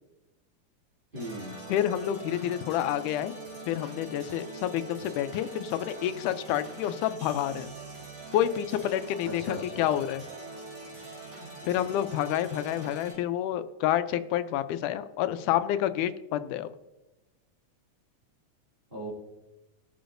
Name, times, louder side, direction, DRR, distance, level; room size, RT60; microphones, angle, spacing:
voice 1, 1.1-1.5 9.2-9.8 11.6-11.9 18.9-19.1, right 1 dB, 20° right, -6 dB, 1.9 m, -38 dB
sound 1, 1.2-13.1, right 2 dB, 50° right, 4.2 m, -43 dB
voice 2, 1.7-3.4 3.7-7.7 8.3-10.2 11.7-16.7, left 11 dB, 85° left, 11 dB, 2.1 m, -29 dB
20.5 x 6.9 x 2.6 m, 1.0 s
omnidirectional pair, 3.5 m